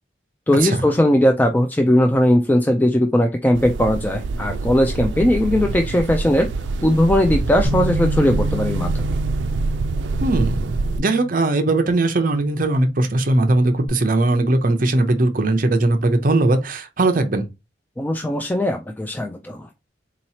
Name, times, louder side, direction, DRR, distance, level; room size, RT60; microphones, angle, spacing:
voice 1, 0.5-6.5 6.8-9.2 18.0-19.7, left 1 dB, 10° left, 0.3 m, -18 dB
sound 1, 3.5-11.0, right 3 dB, 85° right, 0.4 m, -25 dB
Bass guitar, 7.6-13.9, right 1 dB, 25° left, 2.2 m, -30 dB
voice 2, 10.2-17.5, right 2 dB, 50° right, 0.6 m, -19 dB
3.9 x 3.0 x 2.8 m
head